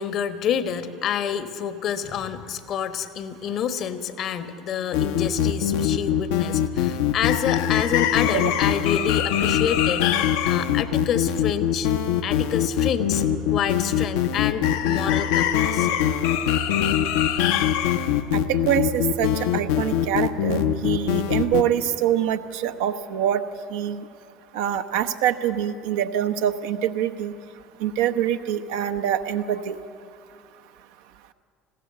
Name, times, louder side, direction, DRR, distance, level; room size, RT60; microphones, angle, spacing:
voice 1, 0.0-11.9 12.2-15.9, left 8 dB, 45° left, 12 dB, 1.1 m, -28 dB
sound 1, 4.9-21.6, left 10 dB, 60° left, 0.8 m, -22 dB
voice 2, 18.3-23.4 23.7-24.0 24.5-27.3 27.8-29.8, right 10 dB, 60° right, 8 dB, 0.8 m, -25 dB
20.5 x 16.0 x 8.1 m, 2.3 s
figure-of-eight pair, 65°, 0 cm